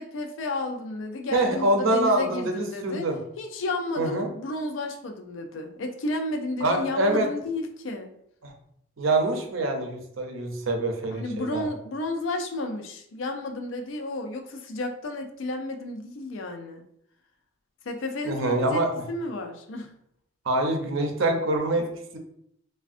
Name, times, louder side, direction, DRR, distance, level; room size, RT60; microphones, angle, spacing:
voice 1, 0.0-3.1 3.4-8.1 11.1-16.8 17.9-19.9, left 2 dB, 65° left, 5 dB, 0.4 m, -32 dB
voice 2, 1.3-3.2 4.0-4.3 6.6-7.3 8.4-8.5 9.0-11.7 18.2-19.1 20.5-21.8, right 2 dB, 75° right, 3 dB, 0.5 m, -25 dB
3.4 x 2.2 x 2.4 m, 0.72 s
head